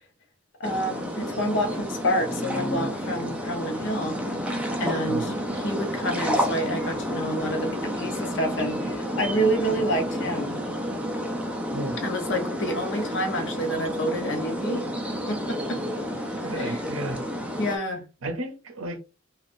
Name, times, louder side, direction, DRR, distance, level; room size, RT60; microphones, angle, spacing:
voice 1, 0.6-4.2 4.8-10.6 12.0-14.9 15.3-15.8 16.5-16.8 17.6-18.0, equal, 65° left, 0.7 m, -28 dB
sound 1, 0.6-17.8, equal, 5° right, 0.5 m, -30 dB
voice 2, 16.4-17.2 18.2-19.0, right 1 dB, 80° right, 0.6 m, -32 dB
3.4 x 2.4 x 2.5 m
head